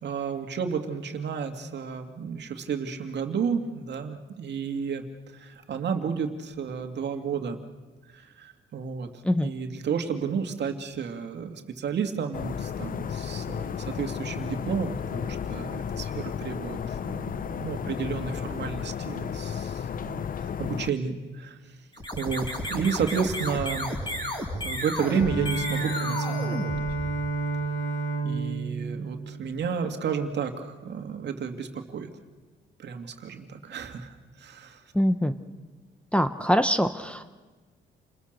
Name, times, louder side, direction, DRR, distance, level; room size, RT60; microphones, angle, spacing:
voice 1, 0.0-5.0 5.3-7.6 8.1-9.1 9.4-21.6 22.2-23.9 24.1-24.3 24.6-26.7 28.2-32.1 32.8-34.8, right 6 dB, 60° right, 5 dB, 2.4 m, -32 dB
sound 1, 12.3-20.9, left 8 dB, 45° left, 0.7 m, -33 dB
sound 2, 21.9-27.4, equal, 25° left, 6.3 m, -33 dB
Bowed string instrument, 25.0-30.2, right 3 dB, 80° left, 3.3 m, -31 dB
voice 2, 34.9-35.3 36.1-37.3, equal, 5° left, 10 dB, 1.0 m, -23 dB
29.0 x 20.5 x 6.7 m, 1.3 s
cardioid pair, 90°, 20 cm